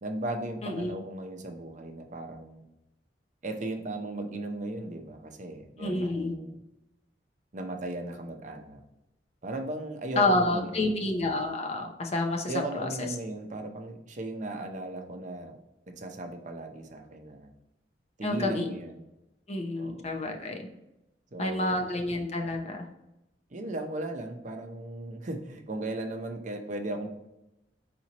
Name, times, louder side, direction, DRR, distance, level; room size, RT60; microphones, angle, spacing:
voice 1, 0.0-2.7 3.4-6.6 7.5-8.8 9.4-11.0 12.5-15.6 15.9-17.5 18.2-19.1 19.8-20.1 21.3-21.9 23.5-27.1, right 2 dB, 45° right, 4 dB, 0.7 m, -37 dB
voice 2, 0.6-0.9 5.8-6.4 10.1-12.9 18.2-18.7 19.5-20.7 21.4-22.9, left 2 dB, 40° left, 3 dB, 0.7 m, -29 dB
4.4 x 4.2 x 2.9 m, 0.92 s
head